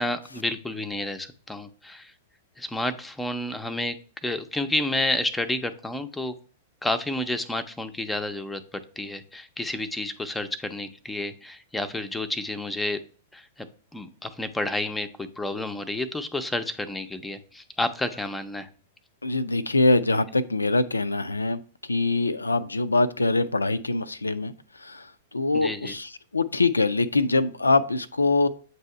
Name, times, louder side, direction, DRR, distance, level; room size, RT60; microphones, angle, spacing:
voice 1, 0.0-2.1 2.6-4.0 4.2-6.3 6.8-13.0 13.3-13.7 13.9-18.7 25.5-25.9, left 1 dB, 5° left, 9 dB, 0.6 m, -30 dB
voice 2, 19.2-28.5, left 3 dB, 90° left, 14 dB, 0.4 m, -24 dB
7.9 x 2.7 x 4.4 m, 0.40 s
figure-of-eight pair, 105°, 0 cm